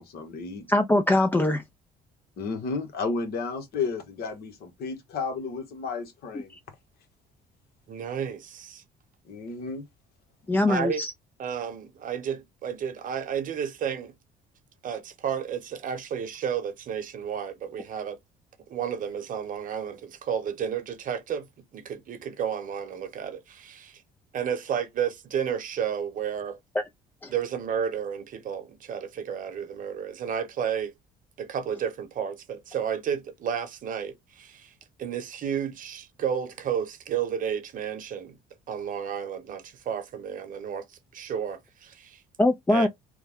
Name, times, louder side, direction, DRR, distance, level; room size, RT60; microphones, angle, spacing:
voice 1, 0.0-0.7 2.4-6.5 9.3-9.8 10.5-10.6, left 4 dB, 65° left, 1.1 m, -32 dB
voice 2, 0.7-1.6 10.5-11.1 27.2-27.3 42.4-42.9, left 2 dB, 10° left, 0.4 m, -22 dB
voice 3, 7.9-8.8 10.7-11.0 11.4-14.1 14.8-18.2 18.7-21.5 21.7-24.0 24.3-26.6 27.3-30.9 31.4-34.7 35.0-38.4 38.7-40.9 41.1-42.2 42.7-42.9, right 8 dB, 50° right, 0.9 m, -32 dB
3.3 x 2.1 x 3.4 m
cardioid pair, 110°, 17 cm